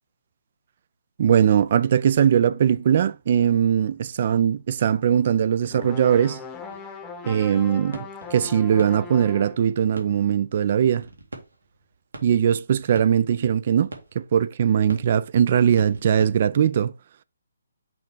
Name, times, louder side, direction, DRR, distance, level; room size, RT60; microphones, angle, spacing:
voice 1, 1.2-6.4 7.3-11.1 12.2-13.9 14.2-16.9, right 8 dB, 40° right, 0.4 m, -20 dB
sound 1, 5.7-9.7, left 5 dB, 10° left, 0.9 m, -39 dB
sound 2, 6.7-7.7 7.9-16.5, right 2 dB, 70° right, 1.9 m, -44 dB
6.0 x 3.3 x 4.8 m
figure-of-eight pair, 140°, 0 cm